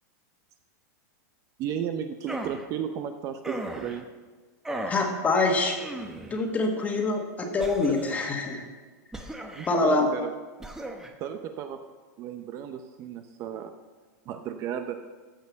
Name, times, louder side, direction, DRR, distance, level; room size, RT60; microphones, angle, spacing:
voice 1, 1.6-4.1 9.5-10.3 11.2-11.8 12.2-13.7 14.3-15.0, right 9 dB, 35° right, 7 dB, 0.6 m, -34 dB
sound 1, 2.3-2.6 3.4-4.0 4.7-5.1 5.8-6.4 7.6-8.3 9.1-9.8 10.6-11.1, right 1 dB, 5° right, 0.8 m, -36 dB
voice 2, 4.9-5.8 6.3-8.6 9.7-10.1, left 3 dB, 15° left, 3 dB, 1.5 m, -25 dB
14.0 x 5.5 x 6.9 m, 1.4 s
supercardioid pair, 150°, 9 cm